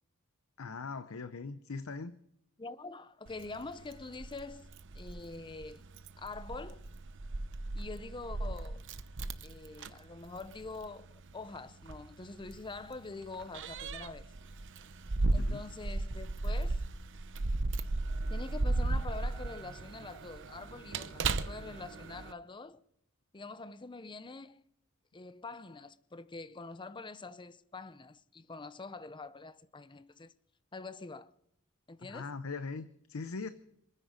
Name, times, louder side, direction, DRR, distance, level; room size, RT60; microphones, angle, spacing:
voice 1, 0.6-2.2 15.4-15.6 32.1-33.5, left 4 dB, 75° left, 0.7 m, -40 dB
voice 2, 2.6-4.7 4.9-5.9 6.2-6.8 7.7-8.8 9.4-14.3 15.3-16.8 18.3-22.8 23.3-24.6 25.1-30.3 30.7-31.3 31.9-32.3, left 3 dB, 20° left, 0.7 m, -45 dB
Keys jangling, 3.3-22.3, right 2 dB, 60° right, 0.9 m, -36 dB
27.0 x 9.8 x 5.1 m
head